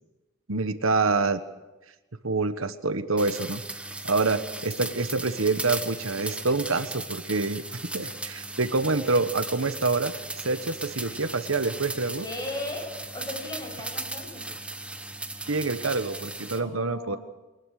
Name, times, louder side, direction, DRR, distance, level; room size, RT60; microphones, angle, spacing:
voice 1, 0.5-1.4 2.2-12.3 15.5-17.2, right 3 dB, 85° right, 11 dB, 1.3 m, -27 dB
sound 1, 3.2-16.6, right 2 dB, 5° right, 1.1 m, -37 dB
voice 2, 12.2-14.5 16.6-17.2, left 2 dB, 20° left, 1 dB, 7.0 m, -37 dB
23.0 x 20.5 x 6.5 m, 1.1 s
head